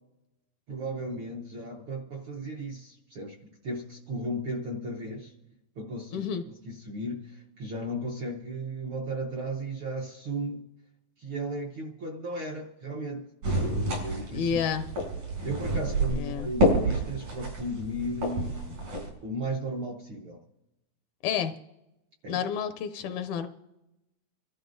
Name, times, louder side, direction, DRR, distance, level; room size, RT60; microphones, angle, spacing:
voice 1, 0.7-5.4 5.8-6.3 6.6-10.6 11.2-13.3 14.0-14.6 15.4-18.6 19.2-20.4 22.2-22.4, right 1 dB, 65° right, -1 dB, 1.3 m, -35 dB
voice 2, 6.1-6.4 14.3-14.8 16.1-16.5 21.2-21.5 22.3-23.5, left 7 dB, 80° left, 8 dB, 2.0 m, -30 dB
sound 1, 13.4-19.1, right 1 dB, 85° right, 5.9 m, -29 dB
27.0 x 13.0 x 2.6 m, 0.95 s
omnidirectional pair, 3.5 m